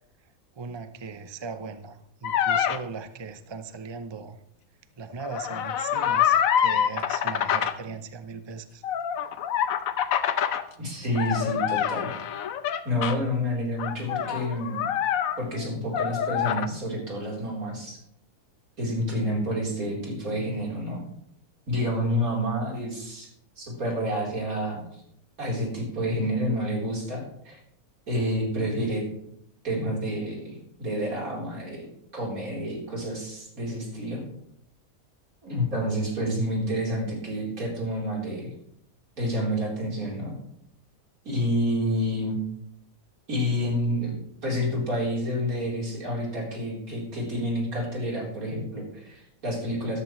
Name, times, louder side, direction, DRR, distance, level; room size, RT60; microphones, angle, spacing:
voice 1, 0.6-4.4 5.0-8.8, right 5 dB, 35° right, 9 dB, 0.4 m, -38 dB
sound 1, 2.2-2.8 5.2-7.8 8.8-10.6 11.2-13.2 13.8-15.7 15.9-16.7, left 9 dB, 70° left, 1.1 m, -26 dB
voice 2, 10.8-12.1 12.8-14.9 15.4-18.0 18.8-21.0 21.7-23.3 23.6-25.0 25.4-27.6 28.1-29.0 29.6-34.2 35.4-38.5 39.2-40.3 41.2-42.4 43.3-50.0, equal, 70° right, -3 dB, 4.4 m, -29 dB
13.0 x 12.5 x 3.2 m, 0.74 s
omnidirectional pair, 1.5 m